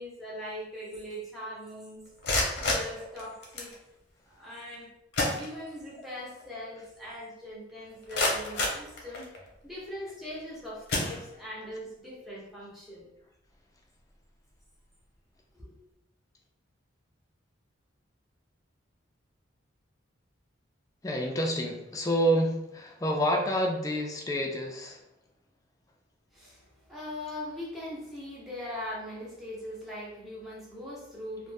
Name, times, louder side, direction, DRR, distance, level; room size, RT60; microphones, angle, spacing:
voice 1, 0.0-2.0 2.6-3.7 4.4-4.9 5.3-9.3 9.6-13.1 15.5-15.7 26.3-31.5, left 1 dB, ahead, -6 dB, 0.7 m, -41 dB
sound 1, 2.0-3.8 4.7-4.8 5.1-6.0 6.4-6.5 7.0-7.1 7.7-9.6 10.2-10.4 10.9-11.7, left 2 dB, 55° left, 0.7 m, -31 dB
voice 2, 21.0-25.0, equal, 15° left, 1 dB, 0.3 m, -28 dB
2.4 x 2.1 x 3.2 m, 0.87 s
head